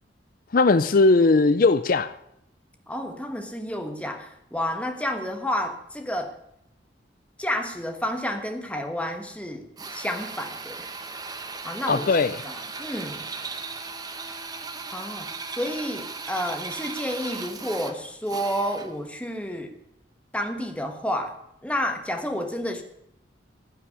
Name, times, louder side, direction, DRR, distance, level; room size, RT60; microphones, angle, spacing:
voice 1, 0.5-2.1 11.9-12.3, left 3 dB, 50° left, 13 dB, 0.5 m, -18 dB
voice 2, 2.9-6.4 7.4-10.9 11.6-12.1 12.4-13.2 14.9-19.7 20.3-22.8, equal, 5° left, 6 dB, 1.3 m, -30 dB
Drill, 9.8-19.0, right 4 dB, 20° right, 0.9 m, -37 dB
15.0 x 5.9 x 9.6 m, 0.76 s
head